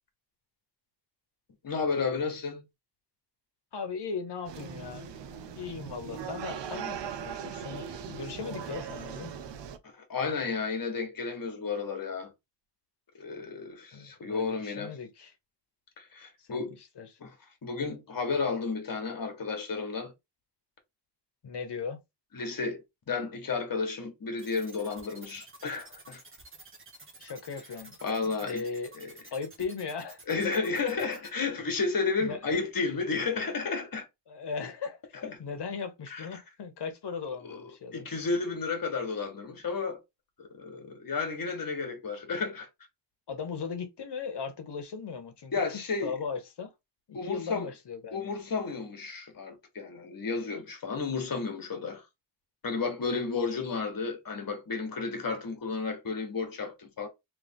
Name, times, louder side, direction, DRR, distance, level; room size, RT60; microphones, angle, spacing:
voice 1, 1.6-2.6 9.9-12.3 13.2-15.0 16.0-16.8 17.2-17.3 17.6-20.1 22.3-26.2 28.0-28.6 28.9-29.1 30.3-34.1 35.3-35.4 36.1-36.4 37.4-37.6 37.9-40.0 40.4-42.7 45.5-46.1 47.1-47.7 48.1-52.0 52.6-57.1, left 4 dB, 50° left, 1.5 m, -32 dB
voice 2, 3.7-5.1 5.6-9.3 13.9-15.3 16.4-17.1 21.4-22.0 27.2-27.9 28.2-28.9 29.3-30.2 32.2-32.4 34.3-35.0 35.4-38.0 43.3-45.5 46.0-46.7 47.1-48.3, left 5 dB, 65° left, 1.2 m, -38 dB
sound 1, 4.5-9.8, right 7 dB, 80° right, 0.7 m, -39 dB
sound 2, 24.4-31.3, right 2 dB, 30° right, 1.2 m, -50 dB
3.5 x 3.4 x 3.6 m
wide cardioid pair, 145°, 43 cm